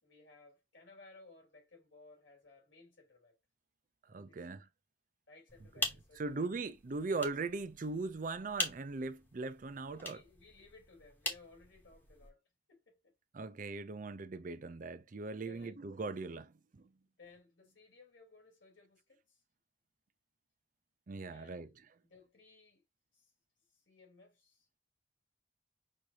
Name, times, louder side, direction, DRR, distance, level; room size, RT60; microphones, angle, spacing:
voice 1, 0.0-3.4 4.0-4.5 5.3-6.6 9.9-12.4 12.7-13.1 15.4-15.9 17.2-19.4 21.1-22.8 23.1-23.3 23.7-24.7, left 3 dB, 80° left, 3.3 m, -60 dB
voice 2, 4.1-4.7 6.2-10.2 13.3-16.8 21.1-21.7, right 3 dB, 40° right, 0.5 m, -39 dB
sound 1, 5.5-12.3, left 2 dB, 10° left, 1.0 m, -43 dB
6.2 x 2.7 x 2.8 m
head